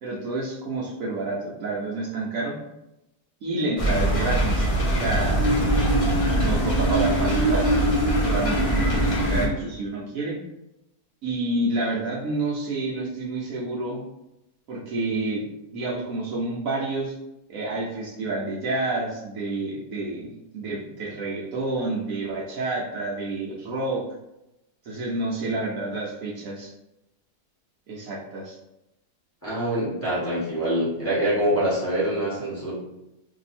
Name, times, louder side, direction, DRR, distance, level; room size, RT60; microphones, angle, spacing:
voice 1, 0.0-2.6 3.4-5.4 6.3-7.7 8.2-10.4 11.2-14.0 14.7-15.4 15.7-17.2 17.5-24.0 24.8-26.7 27.9-28.5, right 2 dB, 65° right, -5 dB, 1.0 m, -29 dB
sound 1, 3.8-9.5, right 1 dB, 45° left, 0.4 m, -22 dB
voice 2, 29.4-32.7, right 1 dB, 10° left, -9 dB, 1.1 m, -25 dB
2.7 x 2.7 x 4.2 m, 0.91 s
omnidirectional pair, 1.7 m